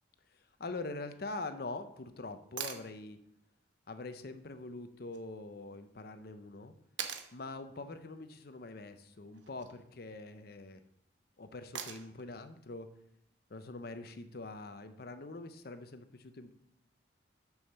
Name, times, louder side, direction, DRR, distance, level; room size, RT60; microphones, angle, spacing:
voice 1, 0.6-3.2 3.9-6.7 7.3-10.8 11.4-12.9 13.5-16.5, left 2 dB, 55° left, 10 dB, 0.7 m, -44 dB
sound 1, 2.6-2.9 5.1-5.2 7.0-7.3 9.3-9.7 11.7-12.2 14.3-14.4, right 8 dB, 75° right, 0.9 m, -41 dB
6.4 x 6.3 x 6.6 m, 0.78 s
head